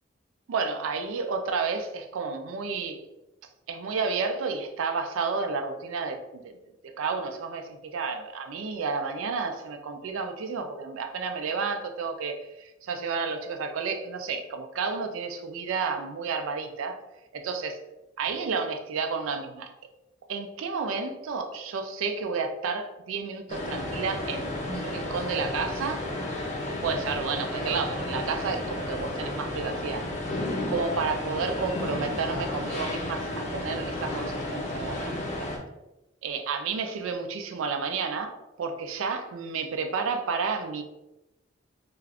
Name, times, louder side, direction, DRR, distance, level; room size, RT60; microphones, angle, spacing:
voice 1, 0.5-3.0 3.7-6.6 7.0-17.0 17.3-17.8 18.2-19.7 20.3-26.1 26.6-30.0 30.7-35.5 36.2-40.8, right 5 dB, 80° right, 6 dB, 0.4 m, -31 dB
sound 1, 23.5-35.6, left 1 dB, 35° left, 0.5 m, -32 dB
2.4 x 2.3 x 3.3 m, 0.97 s
head